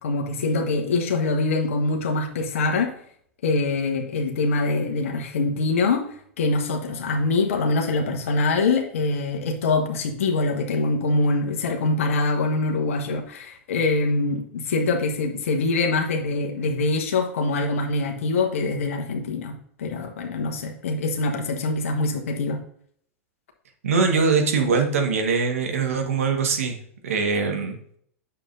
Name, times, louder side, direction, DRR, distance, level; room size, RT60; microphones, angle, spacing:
voice 1, 0.0-2.9 3.4-6.0 6.4-22.6, left 3 dB, 70° left, 3 dB, 1.3 m, -24 dB
voice 2, 23.8-26.8 27.0-27.8, right 5 dB, 75° right, 4 dB, 1.5 m, -22 dB
8.9 x 6.9 x 2.6 m, 0.64 s
hypercardioid pair, 95°, 7 cm